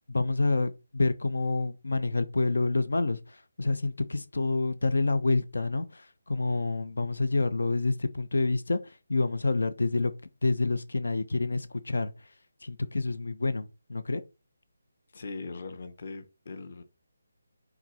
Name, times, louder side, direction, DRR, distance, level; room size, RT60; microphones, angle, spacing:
voice 1, 0.1-10.1 10.4-12.1 12.6-14.2, left 3 dB, 80° left, 0.9 m, -28 dB
voice 2, 15.1-16.8, left 3 dB, 40° left, 0.9 m, -40 dB
6.0 x 4.0 x 5.4 m
hypercardioid pair, 180°, 0 cm